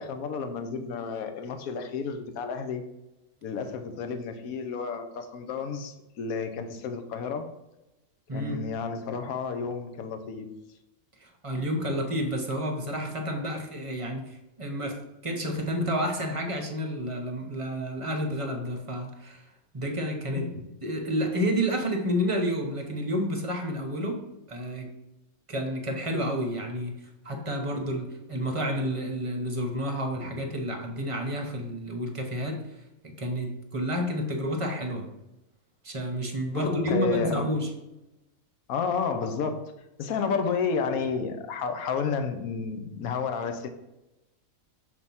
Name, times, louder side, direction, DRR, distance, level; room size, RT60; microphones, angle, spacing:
voice 1, 0.0-2.8 3.4-7.5 8.3-10.5 20.3-20.7 30.2-30.3 36.5-37.6 38.7-39.7 40.0-43.7, left 5 dB, 80° left, 7 dB, 1.1 m, -31 dB
voice 2, 8.3-8.6 11.2-15.0 15.2-19.4 19.7-20.5 20.8-24.2 24.5-24.9 25.5-26.9 27.2-32.6 33.0-35.1 35.8-37.7, equal, 30° right, 2 dB, 0.8 m, -30 dB
6.5 x 3.0 x 5.4 m, 0.94 s
omnidirectional pair, 1.5 m